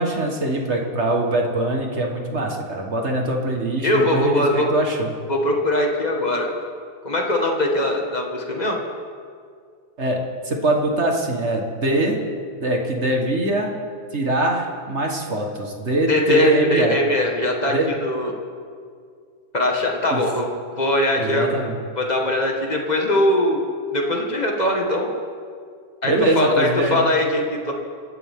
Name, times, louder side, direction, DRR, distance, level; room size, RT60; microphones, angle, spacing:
voice 1, 0.0-5.1 10.0-12.2 12.6-13.7 14.1-17.0 17.7-17.9 20.1-20.2 21.2-21.8 26.0-27.1, right 1 dB, 35° right, 1 dB, 1.1 m, -23 dB
voice 2, 3.8-4.7 5.3-6.5 7.0-8.8 16.1-18.3 19.5-20.5 20.8-21.5 22.0-23.6 23.9-25.1 26.0-27.7, left 1 dB, 20° left, 0 dB, 1.1 m, -21 dB
26.0 x 13.5 x 3.7 m, 2.2 s
omnidirectional pair, 3.4 m